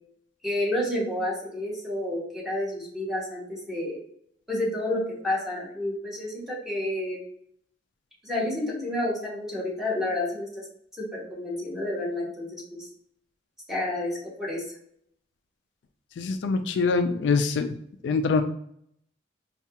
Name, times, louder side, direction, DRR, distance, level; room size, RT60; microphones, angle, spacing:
voice 1, 0.4-4.0 4.5-7.2 8.2-10.6 11.0-12.9 13.7-14.6, left 1 dB, ahead, -5 dB, 1.2 m, -30 dB
voice 2, 16.2-17.7 18.0-18.4, left 4 dB, 70° left, 7 dB, 0.3 m, -24 dB
4.5 x 2.4 x 2.8 m, 0.69 s
head